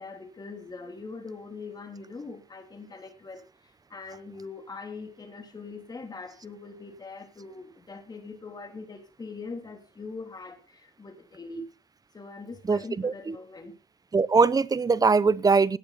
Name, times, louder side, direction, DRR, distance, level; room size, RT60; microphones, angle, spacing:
voice 1, 0.0-3.5 3.9-11.7 12.1-13.7, left 3 dB, 25° left, 3.2 m, -42 dB
voice 2, 12.7-13.3 14.1-15.8, right 4 dB, 20° right, 0.8 m, -22 dB
17.5 x 7.8 x 4.1 m
cardioid pair, 110°, 17 cm